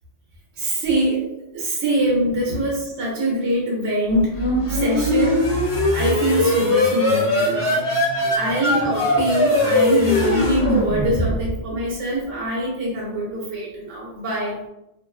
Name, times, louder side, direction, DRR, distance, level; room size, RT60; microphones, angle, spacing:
voice 1, 0.6-1.3 1.5-4.4 4.7-5.4 5.9-7.8 8.3-14.5, right 1 dB, 85° right, -4 dB, 1.1 m, -23 dB
sound 1, 4.0-11.7, left 1 dB, 55° left, 0.9 m, -20 dB
2.7 x 2.1 x 2.3 m, 0.89 s
omnidirectional pair, 1.2 m